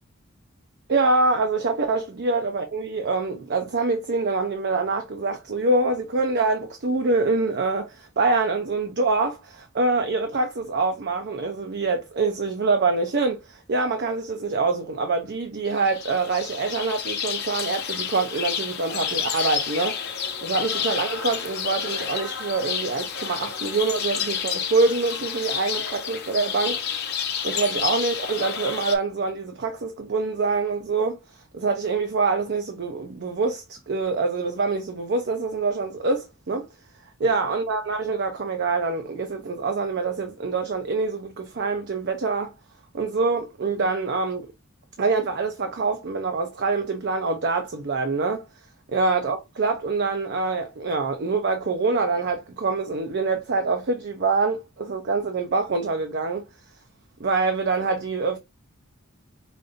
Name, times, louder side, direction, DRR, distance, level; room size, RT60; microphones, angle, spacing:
voice 1, 0.9-20.0 20.4-26.8 27.4-36.7 37.2-42.5 42.9-44.5 45.0-48.4 48.9-56.5 57.2-58.4, right 3 dB, 55° right, 0.5 m, -25 dB
sound 1, 15.7-29.0, left 7 dB, 50° left, 0.8 m, -30 dB
5.1 x 2.6 x 2.5 m
head